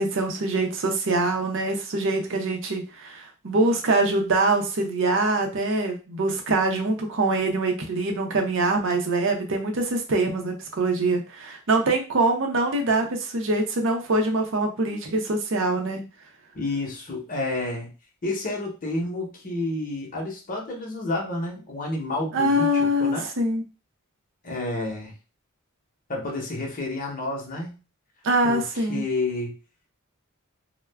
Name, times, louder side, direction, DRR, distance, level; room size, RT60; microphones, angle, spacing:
voice 1, 0.0-16.0 22.3-23.6 28.2-29.0, right 2 dB, 60° right, 4 dB, 0.6 m, -24 dB
voice 2, 16.5-17.9 18.2-23.3 24.4-25.1 26.1-27.8 28.4-29.5, left 2 dB, 40° left, -1 dB, 0.8 m, -30 dB
2.3 x 2.1 x 3.3 m, 0.32 s
head